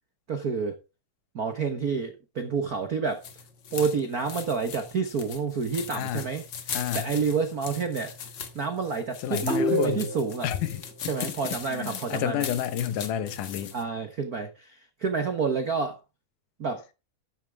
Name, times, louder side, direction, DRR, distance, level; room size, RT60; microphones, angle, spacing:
voice 1, 0.3-0.8 1.3-3.3 3.7-6.4 6.9-8.3 8.5-10.5 11.1-12.5 13.7-16.0 16.6-16.8, right 5 dB, 85° right, 0.8 m, -29 dB
sound 1, 3.1-13.8, left 7 dB, 50° left, 1.4 m, -40 dB
voice 2, 5.9-6.3 6.7-7.1 9.2-10.1 10.4-11.3 11.7-13.7, left 10 dB, 85° left, 2.6 m, -30 dB
sound 2, 9.4-10.5, equal, ahead, 1.5 m, -27 dB
13.0 x 9.1 x 3.5 m
omnidirectional pair, 3.6 m